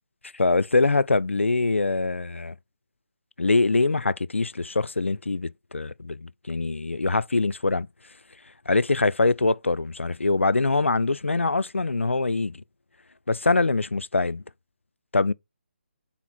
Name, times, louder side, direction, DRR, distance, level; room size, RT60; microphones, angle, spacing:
voice 1, 0.3-2.6 3.4-7.9 8.7-12.6 13.3-14.4 15.1-15.3, left 3 dB, 80° left, 0.4 m, -23 dB
5.8 x 4.1 x 5.9 m
figure-of-eight pair, 145°, 7 cm